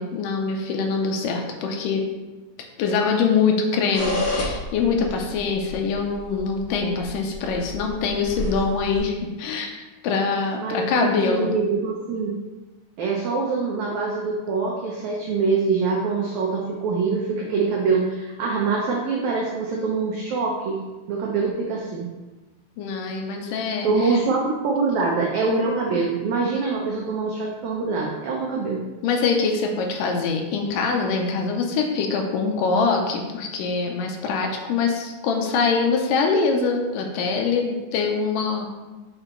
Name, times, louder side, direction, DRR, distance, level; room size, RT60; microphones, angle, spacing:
voice 1, 0.0-2.0 2.8-9.7 10.0-11.5 22.8-24.2 29.0-38.7, left 4 dB, 75° left, 2 dB, 2.2 m, -24 dB
sound 1, 3.9-9.0, left 2 dB, 50° left, 2.2 m, -31 dB
voice 2, 10.6-12.4 13.0-20.8 21.1-22.1 23.8-28.8, right 4 dB, 85° right, -2 dB, 1.6 m, -24 dB
6.4 x 4.5 x 3.9 m, 1.2 s
omnidirectional pair, 4.3 m